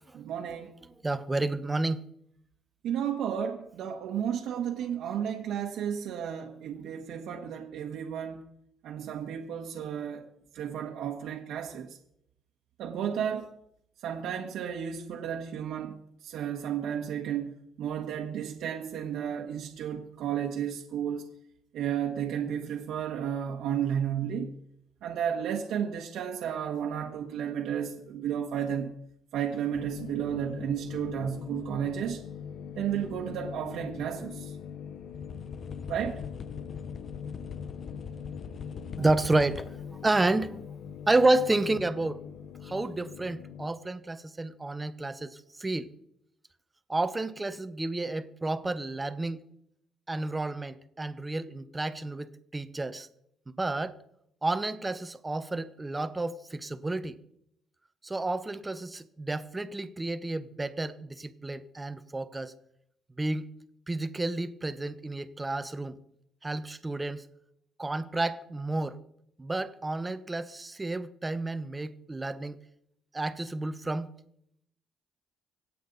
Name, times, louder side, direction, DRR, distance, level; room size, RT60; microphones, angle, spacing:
voice 1, 0.1-0.7 2.8-8.4 8.8-10.2 10.5-12.0 12.8-13.5 14.0-16.0 16.2-21.3 21.7-24.5 25.0-28.9 29.3-32.2 32.8-34.5 35.9-36.2, right 9 dB, 75° right, 1.4 m, -33 dB
voice 2, 1.0-2.0 39.0-40.7 41.1-42.2 42.6-45.9 46.9-49.4 50.1-53.1 53.6-54.0 54.4-57.2 58.0-62.5 63.2-63.5 63.9-66.0 66.4-67.3 67.8-69.0 69.4-72.6 73.1-74.1, right 2 dB, 15° right, 0.9 m, -30 dB
sound 1, 29.7-43.7, left 8 dB, 70° left, 0.7 m, -42 dB
sound 2, 33.0-33.3 34.7-34.8 35.0-40.0 41.8-41.9, left 5 dB, 40° left, 0.9 m, -43 dB
25.5 x 8.5 x 4.1 m
cardioid pair, 100°, 0 cm